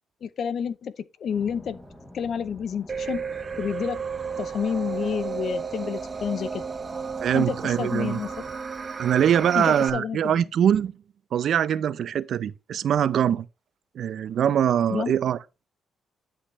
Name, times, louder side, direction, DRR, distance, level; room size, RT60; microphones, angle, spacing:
voice 1, 0.2-1.8 2.1-3.2 3.6-4.0 4.4-6.6 7.3-8.4 9.5-10.4 14.9-15.1, left 7 dB, 60° left, 0.7 m, -29 dB
sound 1, 1.3-8.6, left 1 dB, 10° left, 2.9 m, -48 dB
sound 2, 2.9-9.9, right 6 dB, 35° right, 0.8 m, -33 dB
voice 2, 7.2-8.2 9.0-10.9 11.3-13.5 14.0-15.4, right 9 dB, 65° right, 0.5 m, -23 dB
10.0 x 5.5 x 3.1 m
cardioid pair, 90°, 0 cm